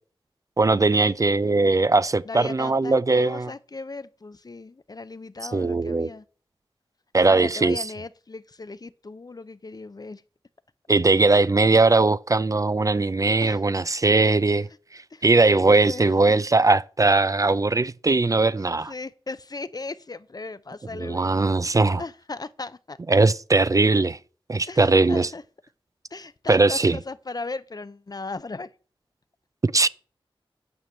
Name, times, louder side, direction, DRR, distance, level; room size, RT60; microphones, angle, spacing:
voice 1, 0.6-3.5 5.5-6.1 7.1-7.8 10.9-14.7 14.9-18.9 21.0-22.0 23.1-24.2 24.5-25.3 26.5-27.0 29.6-29.9, right 3 dB, 35° right, 0.4 m, -20 dB
voice 2, 2.2-6.3 7.2-10.2 13.4-13.6 15.1-15.2 15.6-16.2 18.6-23.0 24.7-25.4 26.1-28.7, left 3 dB, 40° left, 0.6 m, -37 dB
9.6 x 5.3 x 7.1 m
cardioid pair, 50°, 10 cm